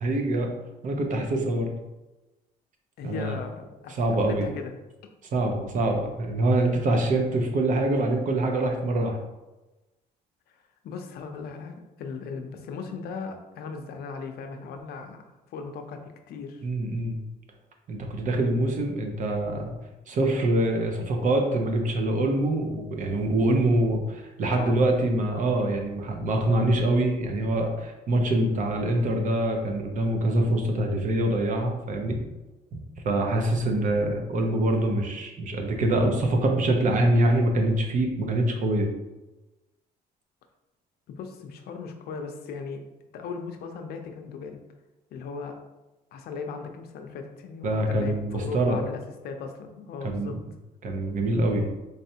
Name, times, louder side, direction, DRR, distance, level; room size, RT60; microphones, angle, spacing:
voice 1, 0.0-0.5 0.8-1.7 3.0-3.4 3.9-4.5 5.3-9.2 16.6-17.2 17.9-19.7 20.1-32.2 32.7-38.9 47.6-48.8 50.0-50.4 50.8-51.7, right 1 dB, 50° right, 3 dB, 0.8 m, -25 dB
voice 2, 3.0-4.0 4.3-4.7 10.5-10.6 10.8-15.2 15.5-16.6 24.6-24.8 41.1-42.8 43.1-44.6 45.1-45.6 46.1-50.4, left 5 dB, 70° left, 5 dB, 0.6 m, -37 dB
4.0 x 3.3 x 2.8 m, 1.0 s
cardioid pair, 110°, 17 cm